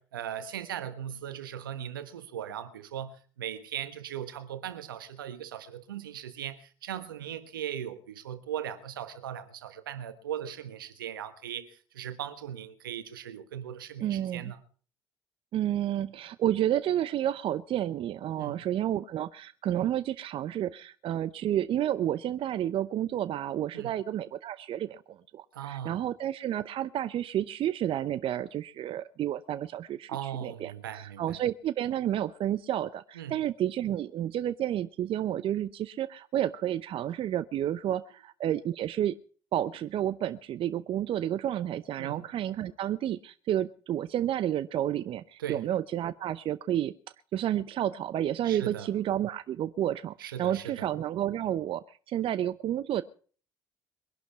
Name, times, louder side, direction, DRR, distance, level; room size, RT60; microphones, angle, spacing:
voice 1, 0.0-14.6 18.3-18.6 23.7-24.0 25.5-26.0 30.1-31.4 33.1-33.4 42.0-42.2 45.4-45.7 48.4-48.9 50.2-50.9, right 10 dB, 90° right, 1.4 m, -38 dB
voice 2, 14.0-14.5 15.5-39.1 39.5-46.9 47.3-53.0, right 11 dB, 55° right, 0.7 m, -30 dB
22.5 x 11.5 x 4.8 m
hypercardioid pair, 55°, 11 cm